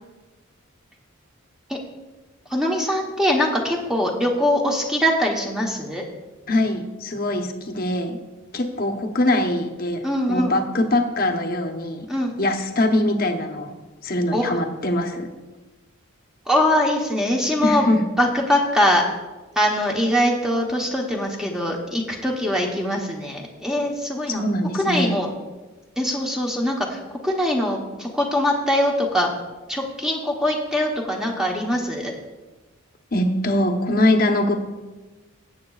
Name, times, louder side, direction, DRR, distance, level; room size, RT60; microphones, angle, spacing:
voice 1, 2.5-6.0 10.0-10.6 12.1-12.3 14.3-14.6 16.5-17.9 18.2-19.0 19.6-24.4 24.7-25.3 26.0-29.3 29.7-32.1, left 1 dB, 5° right, -1 dB, 0.9 m, -22 dB
voice 2, 6.5-8.2 8.5-12.1 12.4-13.7 14.0-15.3 17.6-18.0 24.3-25.1 33.1-34.5, left 1 dB, 45° left, 5 dB, 0.9 m, -22 dB
17.5 x 7.8 x 2.4 m, 1.2 s
head